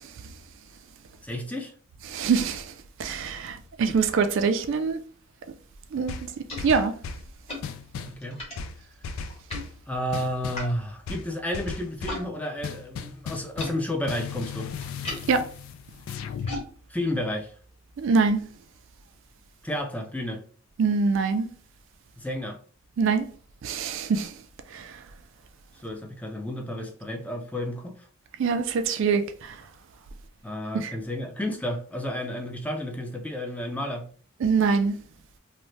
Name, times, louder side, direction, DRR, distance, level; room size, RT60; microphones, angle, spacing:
voice 1, 1.2-1.7 8.0-8.4 9.9-14.7 16.9-17.5 19.6-20.4 22.2-22.6 25.8-28.1 30.4-34.1, left 1 dB, 5° left, 0.4 m, -31 dB
voice 2, 2.1-2.7 3.0-5.0 5.9-6.2 6.6-6.9 15.3-15.4 18.0-18.4 20.8-21.5 23.0-23.3 23.6-24.3 24.7-25.0 28.4-29.6 30.7-30.9 34.4-35.0, right 5 dB, 65° right, 0.4 m, -24 dB
sound 1, 5.8-12.3 12.5-18.4, left 1 dB, 30° left, 1.2 m, -42 dB
sound 2, 6.1-7.3 7.6-8.2 8.6-9.8 10.1-10.7 11.1-12.3 12.6-13.8 14.1-16.6, left 5 dB, 85° left, 0.3 m, -36 dB
2.7 x 2.1 x 3.1 m
head